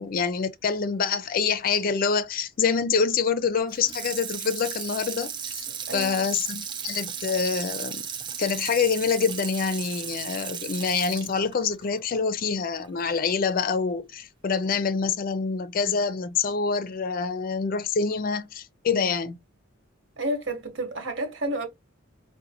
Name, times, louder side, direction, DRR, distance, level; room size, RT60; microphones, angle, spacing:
voice 1, 0.0-5.7 5.9-8.0 8.4-19.4, left 5 dB, 45° left, 0.4 m, -26 dB
Water tap faucet / Sink (filling or washing), 3.7-12.9 13.3-13.4, right 7 dB, 25° right, 0.5 m, -35 dB
voice 2, 5.9-6.3 20.2-21.7, right 1 dB, 65° right, 1.3 m, -30 dB
5.0 x 2.1 x 2.8 m
head